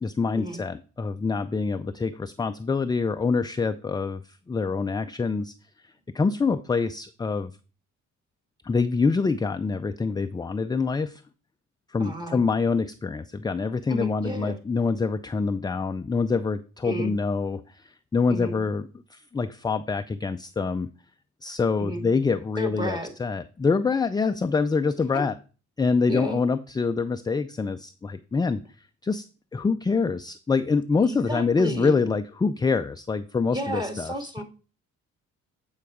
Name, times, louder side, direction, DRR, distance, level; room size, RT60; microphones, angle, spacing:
voice 1, 0.0-5.5 5.8-7.5 8.6-11.2 11.9-20.9 21.4-25.4 25.8-28.6 29.0-29.2 29.5-34.1, left 4 dB, 15° left, 9 dB, 0.4 m, -25 dB
voice 2, 12.0-12.4 13.9-14.6 16.8-17.1 18.3-18.6 21.8-22.0 22.6-23.1 25.1-25.2 26.1-26.4 31.1-31.9 33.5-34.4, equal, 15° right, 6 dB, 1.8 m, -32 dB
9.2 x 4.7 x 4.8 m, 0.35 s
cardioid pair, 90°, 30 cm